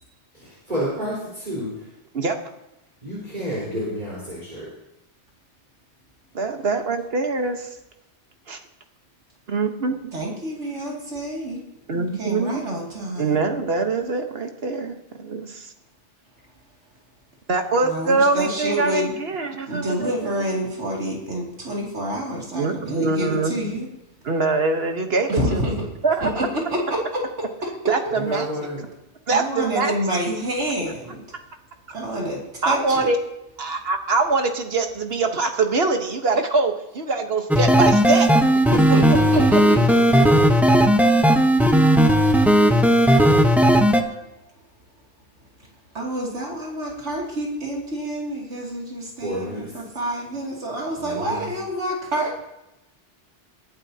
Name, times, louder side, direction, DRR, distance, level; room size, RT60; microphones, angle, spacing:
voice 1, 0.3-1.9 3.0-4.7 28.1-28.8 49.2-49.7 51.0-51.5, equal, 40° right, -8 dB, 4.5 m, -30 dB
voice 2, 6.3-7.7 8.5-8.6 9.5-10.0 11.9-12.6 13.2-15.7 17.5-20.3 22.5-23.6 24.2-25.7 26.0-26.5 27.9-28.5 29.3-29.9 32.6-33.2 33.6-38.3 38.7-38.8 39.1-39.4, right 3 dB, 60° right, 5 dB, 1.4 m, -23 dB
voice 3, 10.1-11.6 11.9-13.4 17.8-19.2 19.7-23.9 25.3-25.9 26.2-27.5 28.1-28.2 29.3-31.2 31.9-33.1 38.7-39.8 40.1-40.2 45.9-52.4, right 1 dB, 80° right, -3 dB, 3.0 m, -28 dB
sound 1, 37.5-44.0, equal, ahead, 0.8 m, -16 dB
21.0 x 11.5 x 2.9 m, 0.92 s
omnidirectional pair, 1.2 m